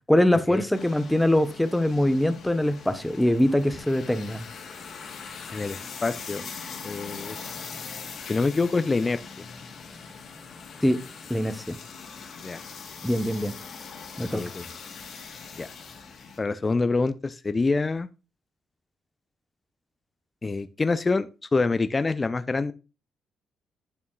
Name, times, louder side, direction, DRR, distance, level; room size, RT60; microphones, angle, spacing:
voice 1, 0.1-4.5 10.8-11.0 11.3-11.8 13.0-13.5 14.2-14.4, left 1 dB, 5° left, 11 dB, 0.8 m, -23 dB
sound 1, 0.7-16.4, left 5 dB, 55° left, 2.1 m, -41 dB
voice 2, 5.5-6.5 6.8-7.6 8.3-9.5 12.4-12.6 14.2-14.6 15.5-15.7 16.4-18.1 20.4-22.7, left 3 dB, 25° left, 13 dB, 0.5 m, -26 dB
8.9 x 6.9 x 2.3 m, 0.30 s
cardioid pair, 90°, 0 cm